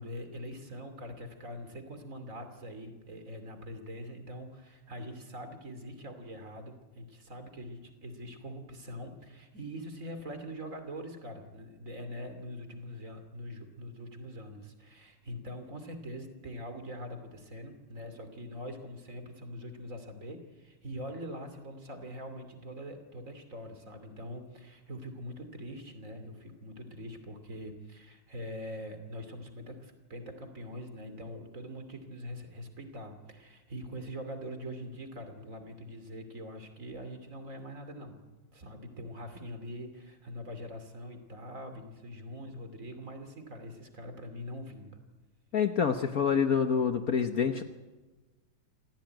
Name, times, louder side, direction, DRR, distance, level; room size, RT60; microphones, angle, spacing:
voice 1, 0.0-38.2 38.5-44.9, equal, 40° right, 8 dB, 3.0 m, -43 dB
voice 2, 45.5-47.6, left 6 dB, 55° left, 7 dB, 1.3 m, -27 dB
26.5 x 16.5 x 9.2 m, 1.2 s
omnidirectional pair, 2.2 m